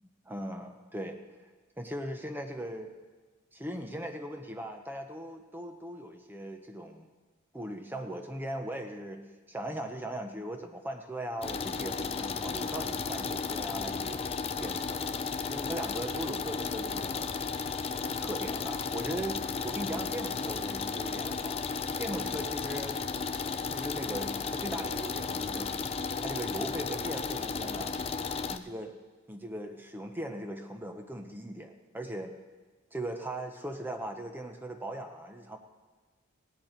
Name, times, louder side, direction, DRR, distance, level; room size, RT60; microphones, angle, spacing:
voice 1, 0.2-1.2 1.8-2.9 3.5-7.1 7.5-14.3 14.6-15.0 15.5-17.3 18.2-21.6 22.0-23.0 23.6-25.7 26.2-27.9 28.5-28.9 29.3-32.3 32.9-35.6, right 1 dB, 10° right, 4 dB, 0.7 m, -39 dB
sound 1, 11.4-28.6, left 5 dB, 25° left, 0.3 m, -34 dB
17.0 x 11.0 x 4.4 m, 1.3 s
head